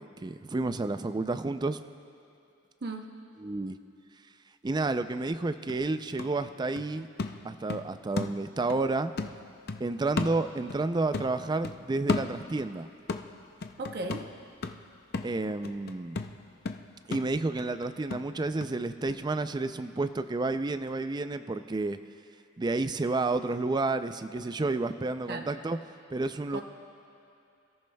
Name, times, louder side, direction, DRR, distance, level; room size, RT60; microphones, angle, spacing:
voice 1, 0.0-1.8 3.4-3.8 4.6-7.1 7.4-9.1 9.8-12.9 15.2-16.2 17.1-22.0 22.6-25.8 26.1-26.6, right 3 dB, 20° right, 10 dB, 0.4 m, -30 dB
sound 1, 5.2-5.3 5.7-8.8 9.2-10.9 11.1-12.7 13.1-18.8 19.1-19.2, left 3 dB, 55° left, 0.6 m, -36 dB
voice 2, 13.8-14.3 25.3-25.5 26.5-26.6, right 2 dB, 55° right, 3 dB, 0.8 m, -36 dB
28.0 x 14.0 x 2.3 m, 2.7 s
head